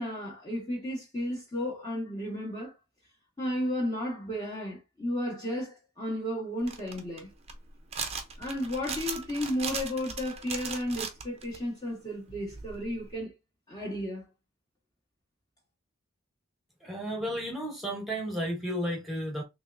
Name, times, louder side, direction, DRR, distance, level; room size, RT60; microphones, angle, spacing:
voice 1, 0.0-2.7 3.4-7.3 8.4-13.3 13.7-14.2, left 1 dB, 20° left, 1.0 m, -33 dB
sound 1, 6.6-11.6 12.3-13.1, right 5 dB, 30° right, 0.5 m, -38 dB
voice 2, 16.8-19.4, equal, ahead, 1.2 m, -33 dB
3.5 x 3.0 x 2.5 m
head